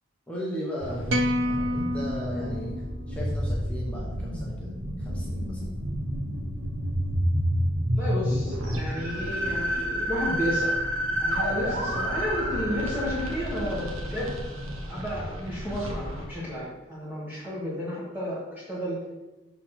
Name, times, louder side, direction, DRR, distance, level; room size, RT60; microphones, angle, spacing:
voice 1, 0.3-2.8 3.1-5.7, equal, 5° left, -5 dB, 1.1 m, -36 dB
sound 1, 0.8-16.2, equal, 80° right, 1.2 m, -30 dB
sound 2, 1.1-3.5, equal, 60° right, 0.5 m, -29 dB
voice 2, 7.9-10.8 11.2-14.3 14.9-19.0, equal, 10° right, -8 dB, 1.5 m, -32 dB
6.7 x 4.0 x 5.9 m, 1.1 s
head